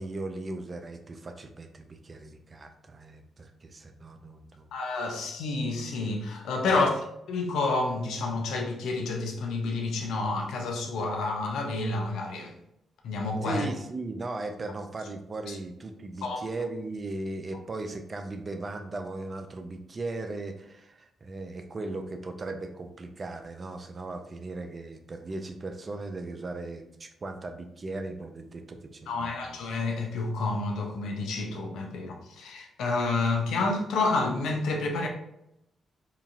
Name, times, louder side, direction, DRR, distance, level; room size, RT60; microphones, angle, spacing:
voice 1, 0.0-5.1 6.7-6.8 13.4-29.6, right 2 dB, 40° right, 7 dB, 0.4 m, -38 dB
voice 2, 4.7-7.0 7.3-12.6 13.0-13.7 15.5-15.6 16.2-16.5 29.1-35.1, left 3 dB, 75° left, 2 dB, 0.5 m, -29 dB
2.8 x 2.4 x 2.4 m, 0.81 s
hypercardioid pair, 45°, 0 cm